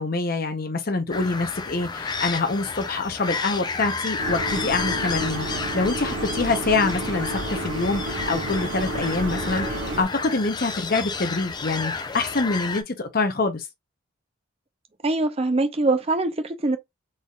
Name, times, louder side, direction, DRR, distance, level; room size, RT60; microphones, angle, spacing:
voice 1, 0.0-13.7, left 3 dB, 45° left, 0.8 m, -25 dB
sound 1, 1.1-12.8, left 4 dB, 20° left, 0.4 m, -31 dB
sound 2, 4.2-10.0, right 1 dB, 65° right, 1.4 m, -30 dB
voice 2, 15.0-16.8, right 2 dB, 30° right, 0.5 m, -23 dB
4.1 x 3.4 x 2.4 m
head